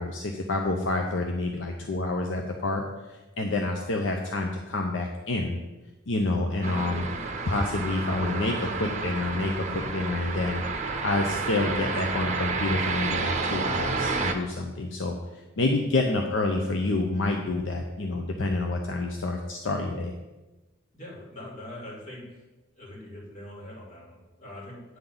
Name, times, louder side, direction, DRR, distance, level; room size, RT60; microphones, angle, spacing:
voice 1, 0.0-2.8 3.1-5.6 6.1-7.1 7.5-10.6 11.0-20.1, left 2 dB, 65° left, 3 dB, 0.7 m, -28 dB
sound 1, 6.6-14.3, right 4 dB, 35° right, 0.8 m, -30 dB
voice 2, 20.9-22.4 22.7-25.0, left 1 dB, 40° left, -4 dB, 2.8 m, -43 dB
9.2 x 3.9 x 7.1 m, 1.1 s
head